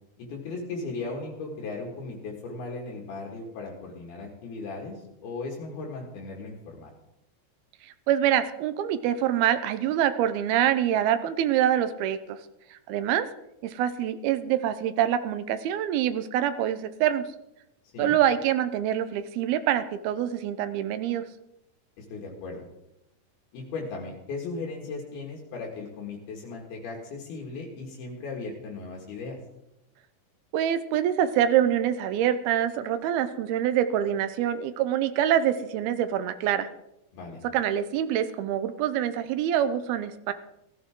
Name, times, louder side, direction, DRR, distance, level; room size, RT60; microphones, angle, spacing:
voice 1, 0.2-6.9 17.9-18.2 22.0-22.7 23.5-29.4 37.1-37.4, left 3 dB, 80° left, -2 dB, 3.9 m, -37 dB
voice 2, 8.1-12.4 12.7-13.3 13.6-17.3 18.0-21.3 30.5-36.7 37.5-40.3, right 10 dB, 85° right, 11 dB, 2.7 m, -25 dB
16.5 x 14.5 x 3.7 m, 0.85 s
omnidirectional pair, 4.3 m